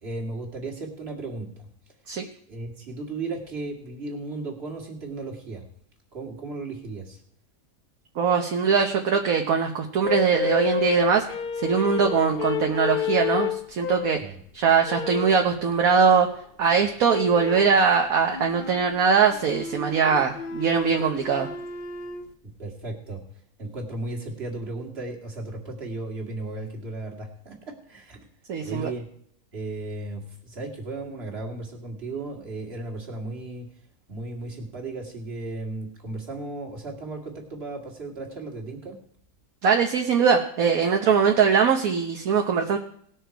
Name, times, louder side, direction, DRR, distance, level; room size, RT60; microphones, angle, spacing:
voice 1, 0.0-1.7 2.5-5.6 6.1-7.2 14.2-14.4 22.4-23.2 23.6-28.2 28.6-29.0 29.5-33.7 34.1-39.0, right 2 dB, 40° right, 0 dB, 2.4 m, -35 dB
voice 2, 8.2-11.2 11.6-14.2 14.5-16.3 16.6-21.5 28.5-28.9 39.6-42.8, right 6 dB, 65° right, 3 dB, 1.3 m, -21 dB
sound 1, 10.0-14.3 14.8-15.5 17.1-17.7 18.3-22.3, left 7 dB, 60° left, 0.5 m, -30 dB
18.5 x 6.4 x 4.6 m, 0.64 s
omnidirectional pair, 1.7 m